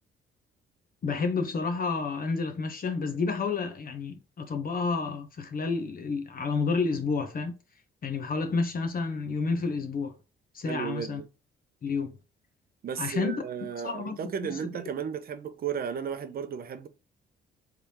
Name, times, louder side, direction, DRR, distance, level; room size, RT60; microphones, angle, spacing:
voice 1, 1.0-7.6 8.0-10.1 10.5-11.2 11.8-12.2 13.0-13.4 13.8-14.8, left 4 dB, 45° left, 0.9 m, -30 dB
voice 2, 10.6-11.3 12.8-16.9, right 7 dB, 50° right, 0.6 m, -34 dB
3.6 x 3.3 x 2.9 m
cardioid pair, 90°, 20 cm